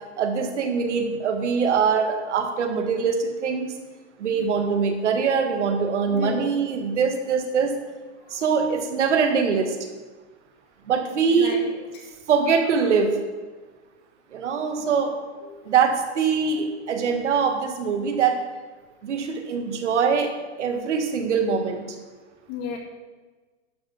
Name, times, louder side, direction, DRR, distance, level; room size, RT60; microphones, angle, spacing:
voice 1, 0.2-3.7 4.2-7.7 8.3-9.8 10.9-11.6 12.3-13.1 14.3-15.1 15.6-18.4 19.0-20.3 20.6-21.9, right 6 dB, 80° right, 5 dB, 1.7 m, -23 dB
voice 2, 6.1-6.6 8.2-8.4 11.3-12.1 14.8-14.9 15.4-15.7 22.5-22.8, left 6 dB, 35° left, 1 dB, 1.8 m, -35 dB
11.5 x 4.2 x 7.1 m, 1.3 s
supercardioid pair, 170°, 35 cm